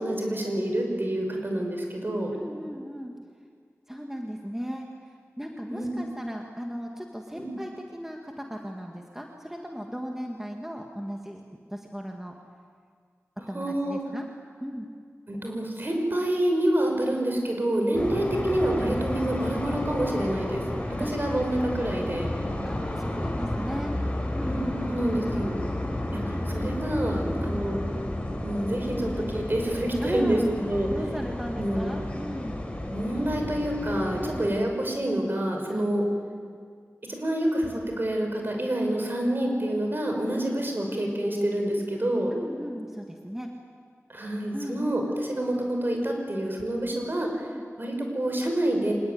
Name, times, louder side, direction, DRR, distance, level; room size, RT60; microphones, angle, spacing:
voice 1, 0.0-2.3 5.7-6.1 7.3-7.5 13.5-14.0 15.3-20.6 21.0-22.3 24.4-25.6 26.1-27.8 28.4-30.9 31.6-31.9 32.9-36.0 37.1-42.3 44.1-47.3 47.8-48.9, right 1 dB, 40° right, 2 dB, 6.0 m, -27 dB
voice 2, 2.3-3.1 3.9-11.4 11.7-12.3 13.4-14.2 14.6-14.9 18.0-18.2 21.0-21.1 22.6-23.9 24.3-25.5 27.2-27.5 30.0-30.6 30.9-32.6 34.2-34.5 35.7-35.9 40.3-40.5 42.3-43.5 44.5-44.8 47.4-47.6, equal, 5° right, 1 dB, 2.0 m, -36 dB
sound 1, 17.9-34.5, left 1 dB, 25° left, 4.5 m, -32 dB
25.5 x 20.0 x 9.6 m, 2.1 s
wide cardioid pair, 75°, 5 cm